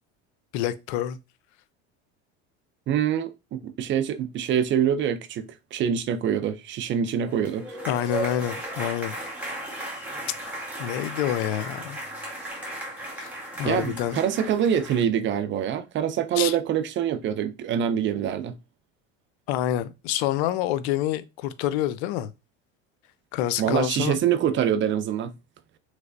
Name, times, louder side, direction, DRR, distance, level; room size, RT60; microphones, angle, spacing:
voice 1, 0.5-1.2 7.9-9.2 10.8-12.0 13.2-14.2 16.4-16.6 19.5-22.3 23.3-24.2, left 12 dB, 80° left, 0.5 m, -27 dB
voice 2, 2.9-5.4 5.7-7.8 13.6-18.5 23.6-25.3, right 9 dB, 40° right, 0.4 m, -25 dB
sound 1, 7.2-15.0, right 1 dB, 5° right, 1.3 m, -35 dB
3.2 x 3.2 x 2.6 m
supercardioid pair, 105°, 32 cm